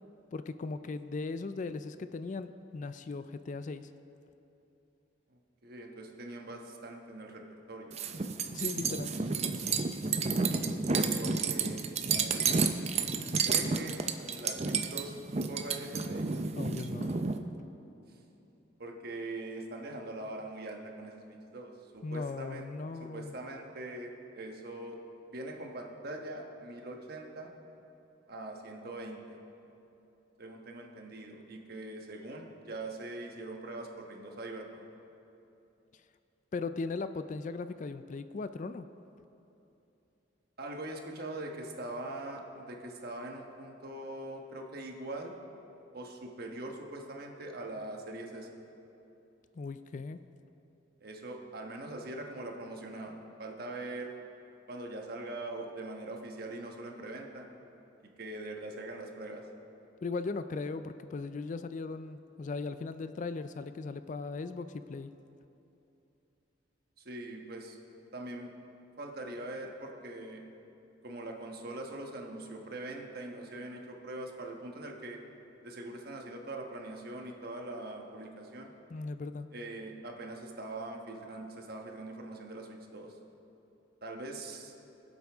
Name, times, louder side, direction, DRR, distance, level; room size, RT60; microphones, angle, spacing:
voice 1, 0.3-3.9 8.5-9.1 16.6-17.2 22.0-23.3 36.5-38.9 49.6-50.2 60.0-65.1 78.9-79.5, left 3 dB, 40° left, 11 dB, 0.3 m, -38 dB
voice 2, 5.3-7.4 7.7-8.0 10.9-12.4 13.2-13.9 14.3-15.2 15.5-16.3 18.8-22.7 23.0-25.0 25.3-27.5 28.3-29.4 30.4-34.9 40.6-45.4 45.9-48.5 51.0-54.1 54.7-57.5 58.2-59.4 67.0-67.8 68.1-68.5 69.0-70.4 71.0-75.2 75.6-78.7 79.5-83.1 84.0-84.7, right 2 dB, 55° right, 2 dB, 1.2 m, -42 dB
sound 1, 7.9-17.4, right 4 dB, 35° right, 0.5 m, -31 dB
23.0 x 8.1 x 3.5 m, 2.9 s
head